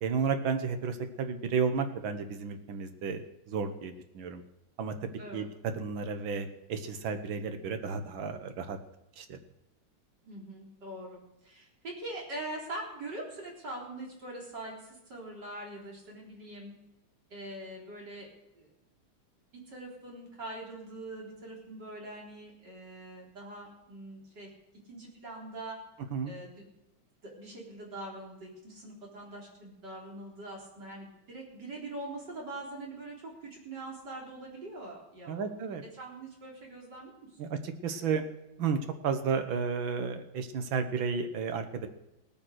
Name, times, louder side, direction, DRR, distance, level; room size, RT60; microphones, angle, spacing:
voice 1, 0.0-4.4 4.8-5.5 5.8-8.8 9.2-9.4 26.1-26.3 35.3-35.8 37.4-38.2 38.6-41.9, right 5 dB, 75° right, 8 dB, 2.0 m, -32 dB
voice 2, 10.2-16.7 17.3-18.3 18.5-18.7 19.5-24.5 24.9-25.8 26.2-26.7 27.2-35.5 35.9-37.1, right 1 dB, 55° right, -2 dB, 4.4 m, -43 dB
18.0 x 8.9 x 6.5 m, 0.93 s
omnidirectional pair, 2.2 m